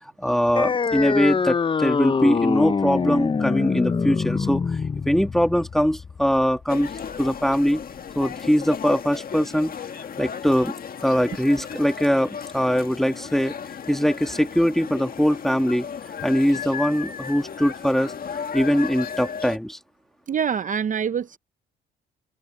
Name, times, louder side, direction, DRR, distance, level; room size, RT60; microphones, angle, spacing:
voice 1, 0.2-4.6 5.1-6.9 7.2-7.8 8.2-9.7 10.2-10.7 11.0-13.6 13.9-15.9 16.2-18.1 18.5-19.8, equal, ahead, 2.1 m, -22 dB
sound 1, 0.6-7.6, left 5 dB, 25° left, 0.6 m, -24 dB
sound 2, 6.7-19.6, left 7 dB, 45° left, 1.7 m, -35 dB
voice 2, 20.3-21.4, right 7 dB, 40° right, 0.6 m, -25 dB
open air
cardioid pair, 90°, 20 cm